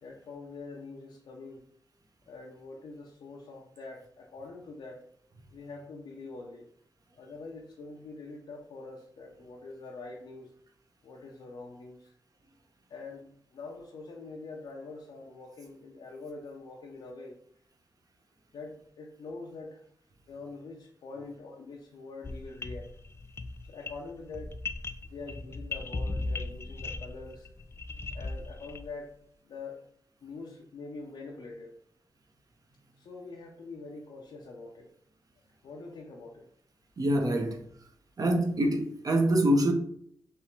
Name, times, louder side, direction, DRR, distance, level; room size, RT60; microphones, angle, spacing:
voice 1, 0.0-1.6 2.3-5.0 5.5-6.6 7.2-10.5 11.0-12.1 12.9-13.3 13.5-17.4 18.5-19.8 20.3-22.9 23.7-24.6 25.1-27.5 28.1-29.1 29.4-29.8 30.2-31.8 33.0-34.9 35.6-36.5, left 3 dB, 90° left, 0.7 m, -44 dB
sound 1, 22.2-29.0, left 3 dB, 35° left, 0.4 m, -38 dB
voice 2, 37.0-37.6 38.2-39.7, right 1 dB, 50° right, 0.9 m, -25 dB
3.5 x 3.0 x 4.4 m
cardioid pair, 80°, 8 cm